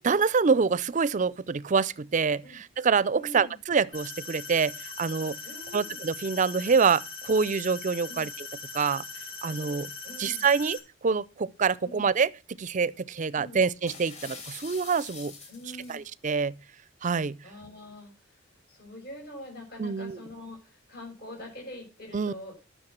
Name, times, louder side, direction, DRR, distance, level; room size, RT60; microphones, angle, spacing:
voice 1, 0.0-5.4 5.7-8.5 8.7-9.0 9.4-9.9 10.2-15.3 15.9-16.6 17.0-17.4 19.8-20.2 22.1-22.3, right 5 dB, 40° right, 0.5 m, -26 dB
voice 2, 3.1-3.6 5.4-6.0 8.1-8.3 10.0-10.4 11.8-12.0 13.3-13.6 15.5-16.0 17.4-18.4 18.7-22.5, left 1 dB, 50° left, 6.1 m, -44 dB
sound 1, 3.9-10.8, left 4 dB, 85° left, 4.8 m, -41 dB
sound 2, 13.9-16.0, left 4 dB, 35° left, 3.1 m, -44 dB
10.5 x 6.5 x 7.4 m
head